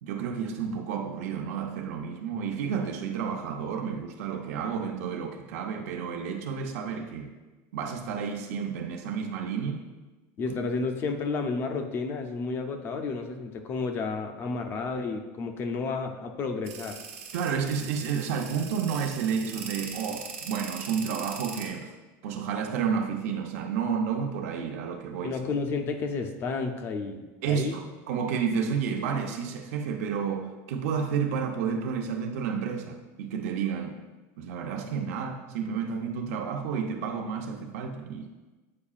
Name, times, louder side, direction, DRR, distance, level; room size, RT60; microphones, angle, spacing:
voice 1, 0.0-7.3 7.7-9.8 17.3-21.9 22.2-25.4 27.4-34.0 34.4-38.3, right 6 dB, 85° right, 3 dB, 0.8 m, -31 dB
voice 2, 10.4-17.0 25.2-27.2 27.5-27.8, left 4 dB, 30° left, 6 dB, 0.5 m, -31 dB
sound 1, 16.7-21.7, right 6 dB, 70° right, 1.1 m, -41 dB
8.5 x 4.8 x 2.4 m, 1.2 s
cardioid pair, 165°, 8 cm